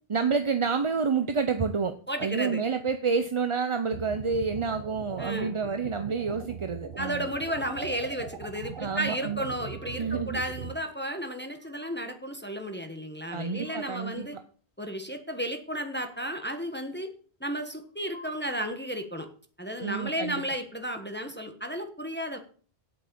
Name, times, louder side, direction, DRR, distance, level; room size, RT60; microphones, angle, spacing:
voice 1, 0.1-1.9 2.2-7.3 8.8-9.4 10.0-10.4 13.3-14.3 19.8-20.4, right 5 dB, 35° right, 9 dB, 0.6 m, -29 dB
voice 2, 2.1-2.6 5.2-5.5 7.0-14.4 14.8-17.1 17.4-19.3 19.6-22.4, equal, 10° left, 5 dB, 1.3 m, -33 dB
sound 1, 3.9-10.7, right 6 dB, 60° right, 1.2 m, -40 dB
sound 2, 7.8-8.4 9.2-10.2 11.2-12.2 13.1-14.3 15.8-16.7 17.8-18.8, left 3 dB, 85° left, 4.0 m, -56 dB
8.6 x 6.5 x 8.4 m, 0.42 s
omnidirectional pair, 1.0 m